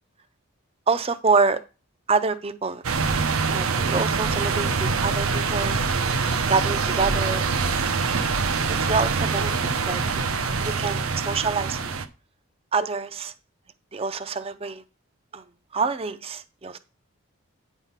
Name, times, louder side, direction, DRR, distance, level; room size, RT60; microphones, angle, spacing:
voice 1, 0.9-1.6 2.1-2.8 3.5-5.8 6.3-7.5 8.6-9.5 9.9-10.0 10.6-11.9 12.7-13.3 13.9-14.8 15.3-15.4 15.7-16.8, right 4 dB, 25° right, 0.5 m, -26 dB
sound 1, 2.8-12.1, right 4 dB, 75° right, 0.7 m, -24 dB
8.9 x 3.6 x 5.6 m
head